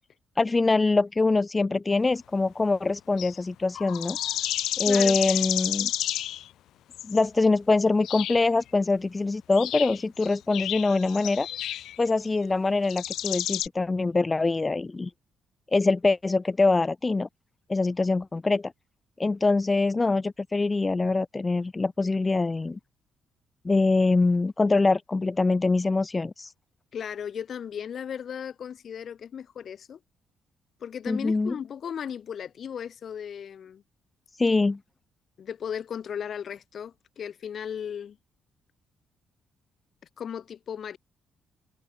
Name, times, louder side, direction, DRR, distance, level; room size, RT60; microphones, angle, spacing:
voice 1, 0.4-4.2 4.8-5.9 7.0-11.5 12.0-15.1 15.7-17.3 17.7-18.7 19.2-22.8 23.6-26.5 31.1-31.5 34.4-34.8, left 3 dB, 25° left, 0.5 m, -24 dB
sound 1, 2.1-2.2 3.2-3.4 3.7-6.5 6.9-7.2 8.0-8.5 9.5-12.6 12.8-13.7, left 12 dB, 80° left, 1.4 m, -31 dB
voice 2, 4.8-5.2 26.9-30.0 30.8-33.8 35.4-38.2 40.2-41.0, left 8 dB, 55° left, 1.8 m, -36 dB
cardioid pair, 90°, 0 cm